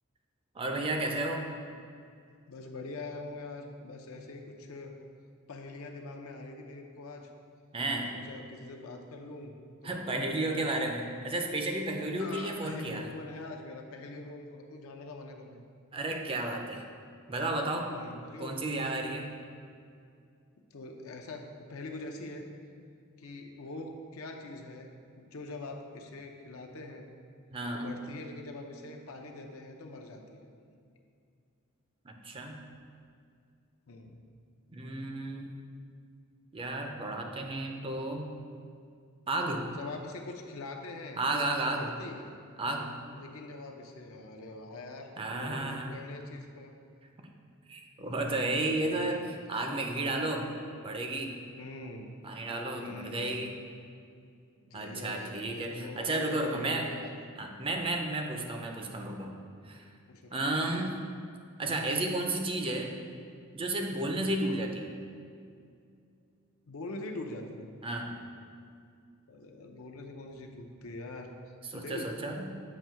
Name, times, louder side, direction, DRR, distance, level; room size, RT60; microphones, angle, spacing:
voice 1, 0.6-1.5 7.7-8.1 9.8-13.1 15.9-16.8 17.3-17.9 18.4-19.3 27.5-28.0 32.0-32.6 34.7-35.5 36.5-38.3 39.3-39.7 41.2-41.9 42.6-42.9 45.2-46.0 47.7-49.2 49.5-50.5 50.8-51.4 52.2-53.6 54.7-56.9 57.4-59.4 59.6-59.8 60.3-61.0 61.6-62.9 63.5-65.0 67.8-68.2 71.7-72.5, right 2 dB, 25° right, 3 dB, 0.5 m, -32 dB
voice 2, 2.5-4.9 5.5-7.3 8.0-9.6 9.8-10.8 12.2-15.6 17.9-18.6 20.7-21.4 21.7-22.5 23.2-24.9 25.2-27.1 27.7-30.5 33.9-34.2 39.7-41.2 41.6-42.3 43.1-46.8 48.0-49.2 51.6-52.1 52.7-53.4 54.6-57.3 58.8-59.0 60.1-60.3 64.1-64.3 66.7-67.7 69.3-71.3 71.7-72.1, left 2 dB, 70° left, 3 dB, 0.6 m, -44 dB
7.4 x 2.7 x 5.6 m, 2.3 s
head